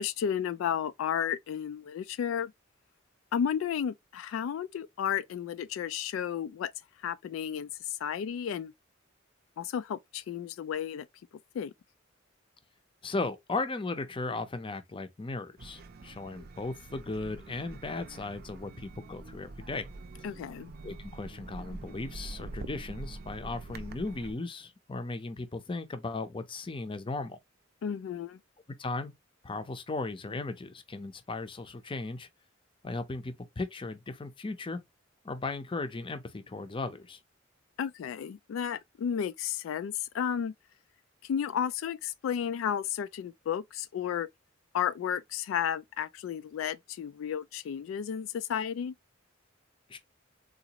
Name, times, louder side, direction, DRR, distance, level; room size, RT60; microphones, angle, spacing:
voice 1, 0.0-2.5 3.3-6.7 7.0-8.7 9.6-11.1 11.5-11.7 20.2-20.7 27.8-28.4 37.8-40.5 41.2-44.3 44.7-48.9, left 8 dB, 85° left, 0.3 m, -33 dB
voice 2, 13.0-19.9 20.8-27.4 28.8-29.1 29.4-32.3 32.8-34.8 35.2-37.2 49.9-50.0, left 3 dB, 25° left, 0.5 m, -36 dB
sound 1, 15.6-24.3, right 2 dB, 50° right, 0.5 m, -45 dB
3.8 x 2.4 x 2.8 m
head